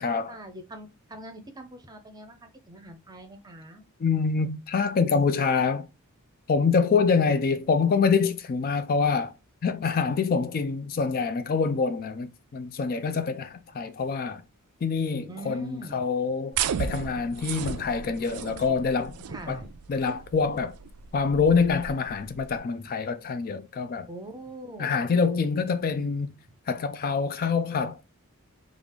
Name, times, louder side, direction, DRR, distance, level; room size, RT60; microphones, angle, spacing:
voice 1, 0.0-3.8 13.7-14.0 15.3-16.1 19.3-19.7 24.1-25.0, right 1 dB, 20° right, 0.6 m, -42 dB
voice 2, 4.0-5.9 6.5-9.3 9.6-14.4 14.8-19.2 19.5-19.6 19.9-20.7 21.1-24.1 24.8-26.3 26.7-28.0, left 5 dB, 40° left, 0.3 m, -25 dB
sound 1, 16.5-22.6, right 8 dB, 90° right, 0.4 m, -35 dB
3.6 x 2.4 x 3.5 m
head